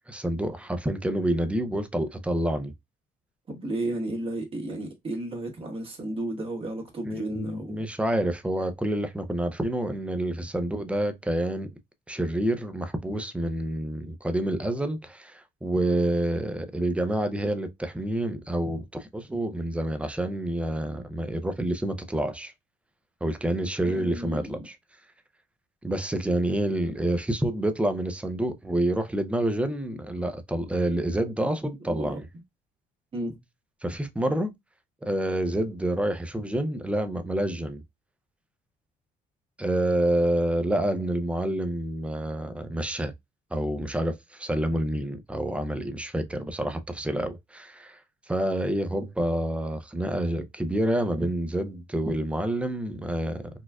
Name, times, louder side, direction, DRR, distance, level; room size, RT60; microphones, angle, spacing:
voice 1, 0.1-2.7 7.0-11.7 12.1-22.5 23.2-24.8 25.8-32.2 33.8-34.5 35.0-37.8 39.6-43.1 43.5-48.0 48.3-53.5, right 1 dB, 5° right, 0.5 m, -28 dB
voice 2, 3.5-7.8 23.8-24.6 31.8-32.2 33.1-33.4, right 1 dB, 35° right, 1.5 m, -33 dB
4.2 x 2.4 x 2.3 m
cardioid pair, 110°, 17 cm